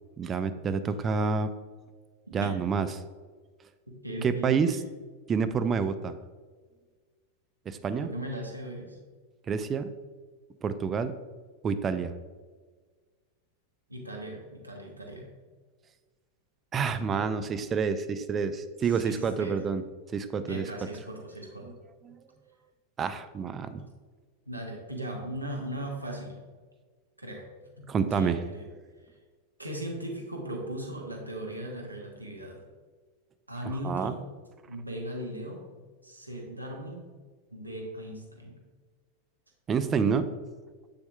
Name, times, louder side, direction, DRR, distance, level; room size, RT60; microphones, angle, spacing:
voice 1, 0.2-1.5 2.3-2.9 4.2-4.8 5.3-6.1 7.7-8.1 9.5-9.9 10.6-11.2 11.6-12.1 16.7-19.8 20.1-20.7 22.1-22.2 23.0-23.8 27.9-28.4 33.8-34.1 39.7-40.3, right 6 dB, 25° right, 10 dB, 0.4 m, -28 dB
voice 2, 2.3-2.6 3.9-4.8 8.0-9.0 13.9-15.3 18.9-19.5 20.5-21.7 23.4-23.7 24.5-26.4 27.2-27.5 27.8-28.6 29.6-32.6 33.5-34.2 34.7-35.6 36.0-37.0 37.5-38.6, right 1 dB, 85° right, 0 dB, 1.1 m, -38 dB
7.8 x 6.9 x 2.3 m, 1.5 s
figure-of-eight pair, 90°, 0 cm